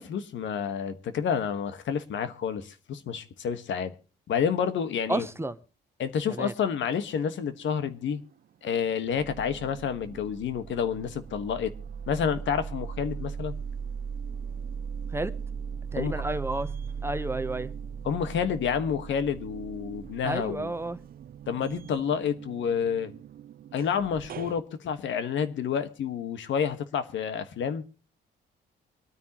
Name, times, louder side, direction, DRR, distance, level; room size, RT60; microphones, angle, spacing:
voice 1, 0.0-3.9 4.3-5.3 6.0-8.2 8.6-11.7 12.1-13.5 16.0-16.1 18.0-20.7 21.5-23.1 23.7-27.8, left 7 dB, 70° left, 1.5 m, -29 dB
voice 2, 5.1-5.6 6.3-6.5 15.1-15.3 15.9-16.7 17.0-17.7 20.2-21.0, right 2 dB, 10° right, 0.9 m, -31 dB
sound 1, 7.5-8.3 8.7-24.6, right 6 dB, 50° right, 0.5 m, -39 dB
25.0 x 9.4 x 3.0 m
cardioid pair, 90°, 20 cm